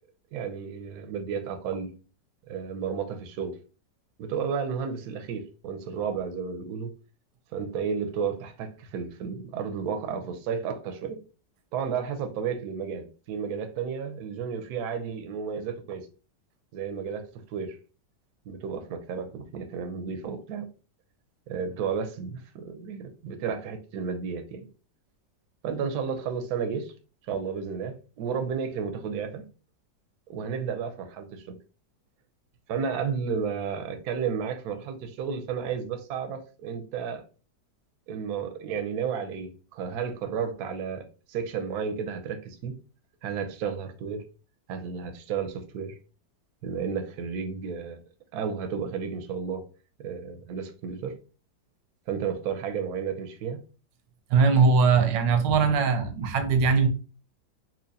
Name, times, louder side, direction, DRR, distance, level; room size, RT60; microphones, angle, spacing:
voice 1, 0.3-1.9 2.5-3.5 4.2-6.9 7.5-11.2 11.7-16.0 16.7-17.8 18.5-20.6 21.5-24.6 25.6-26.9 27.3-29.4 30.3-31.6 32.7-37.2 38.1-42.7 43.2-44.2 44.7-46.0 46.6-48.0 48.3-49.6 50.0-51.1 52.1-53.6, right 6 dB, 70° right, 1.1 m, -32 dB
voice 2, 54.3-56.9, right 5 dB, 85° right, 1.4 m, -21 dB
4.3 x 2.5 x 2.7 m
omnidirectional pair, 1.9 m